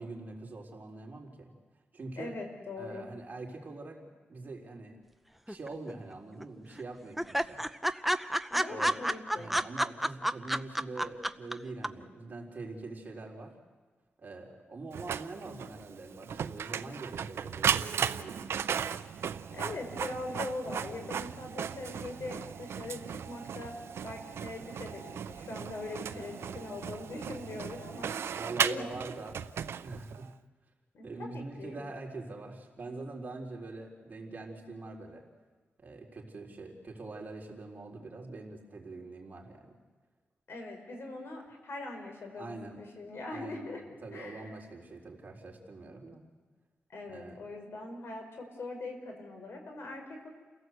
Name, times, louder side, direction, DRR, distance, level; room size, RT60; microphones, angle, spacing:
voice 1, 0.0-1.5 1.9-2.3 2.8-4.0 4.3-5.0 5.5-7.6 8.7-9.0 9.3-13.5 14.2-18.5 25.9-26.8 28.3-29.4 29.8-30.3 31.0-35.2 35.8-39.7 42.4-42.8 43.3-46.2 47.1-47.4, right 3 dB, 40° right, 0 dB, 4.1 m, -44 dB
voice 2, 2.2-3.0 8.5-9.5 19.5-23.7 24.0-28.3 28.6-29.0 30.9-31.8 40.5-43.8 44.1-44.5 46.9-50.3, left 2 dB, 70° left, 3 dB, 5.0 m, -42 dB
sound 1, 5.5-6.1 6.4-6.5 6.8-6.9 7.2-11.5 11.8-11.9, equal, 5° right, 0.7 m, -29 dB
Printer, 14.9-30.3, right 8 dB, 90° right, 0.6 m, -36 dB
29.0 x 17.0 x 8.0 m, 1.3 s
wide cardioid pair, 105°, 4 cm